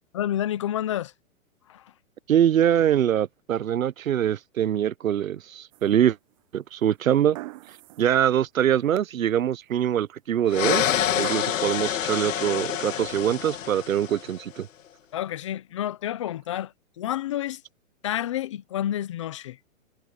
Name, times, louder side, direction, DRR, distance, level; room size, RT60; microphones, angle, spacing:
voice 1, 0.1-1.1 1.7-1.8 15.1-17.6 18.0-19.6, left 12 dB, 25° left, 0.6 m, -29 dB
voice 2, 2.3-6.2 6.5-7.4 8.0-10.8 11.1-14.7, right 10 dB, 85° right, 1.1 m, -23 dB
sound 1, 5.7-6.3 7.3-8.2 8.6-8.7 10.4-11.7 12.8-12.9, right 18 dB, 25° right, 0.9 m, -42 dB
sound 2, 10.5-14.4, left 10 dB, 70° left, 1.7 m, -27 dB
hypercardioid pair, 160°, 40 cm